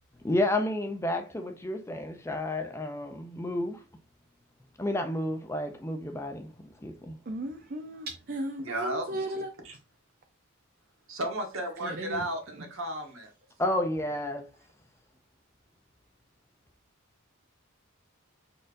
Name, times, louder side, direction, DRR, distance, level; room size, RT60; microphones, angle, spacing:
voice 1, 0.2-3.8 4.8-6.5 6.8-7.2 13.6-14.5, left 1 dB, 10° left, 0.5 m, -31 dB
voice 2, 7.3-9.5 11.8-12.3, right 1 dB, 45° right, 0.5 m, -35 dB
voice 3, 8.6-9.3 9.6-9.7 11.1-13.3, right 1 dB, 65° right, 1.3 m, -34 dB
4.9 x 4.3 x 2.6 m
head